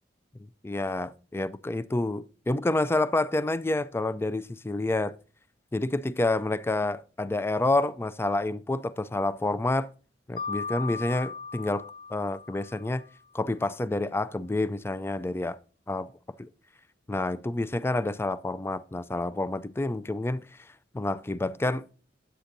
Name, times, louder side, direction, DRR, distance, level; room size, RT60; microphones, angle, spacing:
voice 1, 0.4-5.2 5.7-9.9 10.3-13.0 13.3-15.6 15.9-16.1 16.4-16.5 17.1-21.9, left 2 dB, 15° left, 0.3 m, -29 dB
Mallet percussion, 10.4-13.1, left 5 dB, 50° left, 0.7 m, -38 dB
10.0 x 8.0 x 2.6 m
head